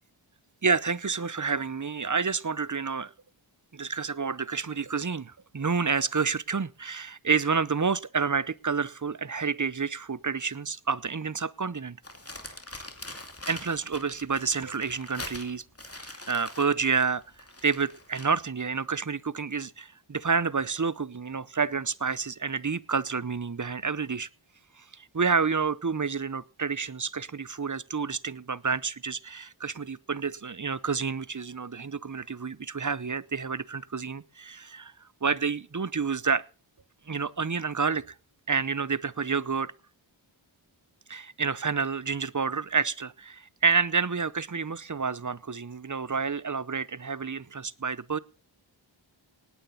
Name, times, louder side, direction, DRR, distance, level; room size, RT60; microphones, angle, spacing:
voice 1, 0.6-3.1 3.7-12.0 13.5-17.2 17.6-24.3 24.8-36.4 37.1-38.1 38.5-39.7 41.1-48.2, right 5 dB, 40° right, 0.7 m, -29 dB
Crumpling crinkling, 12.0-18.4, left 2 dB, 30° left, 2.7 m, -43 dB
18.5 x 9.3 x 5.5 m
wide cardioid pair, 50°, 48 cm